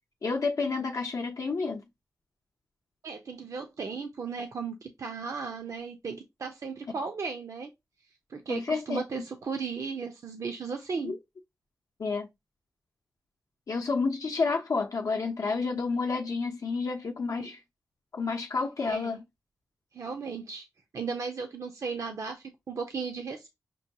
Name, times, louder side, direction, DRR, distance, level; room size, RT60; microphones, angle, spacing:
voice 1, 0.2-1.8 6.9-7.0 8.5-9.0 11.0-11.2 12.0-12.3 13.7-17.6 18.1-19.2, left 4 dB, 65° left, 0.6 m, -30 dB
voice 2, 3.0-7.7 8.3-11.1 17.3-17.5 18.8-19.2 19.9-20.6 20.9-23.5, right 5 dB, 60° right, 0.6 m, -36 dB
6.0 x 2.2 x 2.7 m
wide cardioid pair, 110°, 6 cm